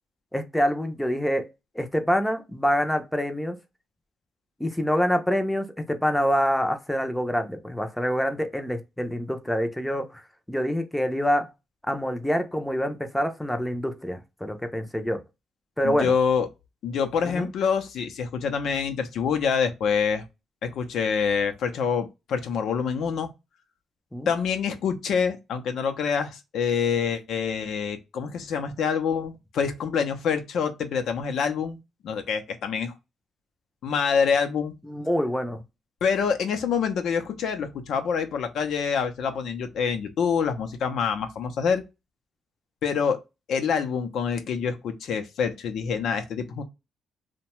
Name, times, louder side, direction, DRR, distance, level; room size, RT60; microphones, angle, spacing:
voice 1, 0.3-1.5 1.8-3.6 4.6-10.2 10.5-11.5 11.9-15.2 15.8-16.1 17.2-17.5 24.1-24.3 34.9-35.6, equal, 5° left, 0.5 m, -26 dB
voice 2, 15.8-16.5 16.8-20.2 20.6-23.3 24.3-31.8 32.0-32.9 33.8-34.7 36.0-41.8 42.8-43.2 43.5-46.6, left 6 dB, 70° left, 0.5 m, -26 dB
2.7 x 2.1 x 3.0 m
cardioid pair, 90°, 0 cm